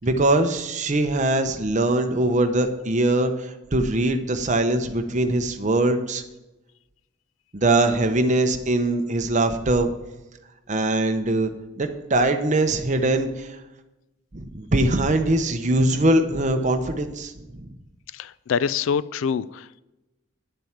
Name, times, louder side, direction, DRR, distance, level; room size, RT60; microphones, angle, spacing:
voice 1, 0.0-6.2 7.5-9.9 10.7-11.5 11.8-13.6 14.3-17.7, right 2 dB, 35° right, 7 dB, 0.8 m, -22 dB
voice 2, 18.1-19.8, left 6 dB, 75° left, 18 dB, 0.4 m, -25 dB
10.0 x 7.8 x 5.8 m, 1.0 s
head